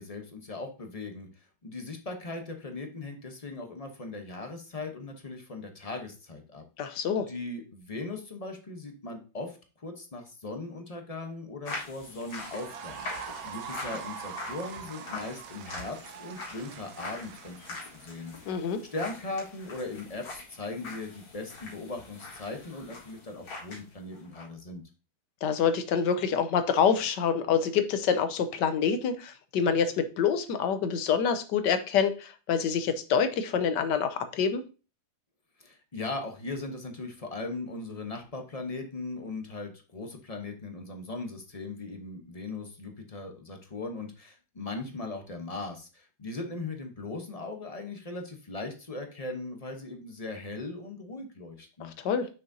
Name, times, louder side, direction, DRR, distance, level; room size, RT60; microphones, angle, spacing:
voice 1, 0.0-6.6 7.3-13.1 13.4-17.6 17.9-18.3 18.9-24.8 35.6-51.9, left 3 dB, 30° left, 4 dB, 0.7 m, -39 dB
voice 2, 6.8-7.3 18.5-18.8 25.4-34.6 51.8-52.3, left 7 dB, 70° left, 10 dB, 1.3 m, -26 dB
sound 1, 11.7-23.9 24.1-24.5, left 3 dB, 90° left, 2.5 m, -43 dB
sound 2, 12.2-18.5, right 7 dB, 90° right, 1.6 m, -43 dB
7.0 x 6.2 x 2.7 m, 0.33 s
omnidirectional pair, 2.1 m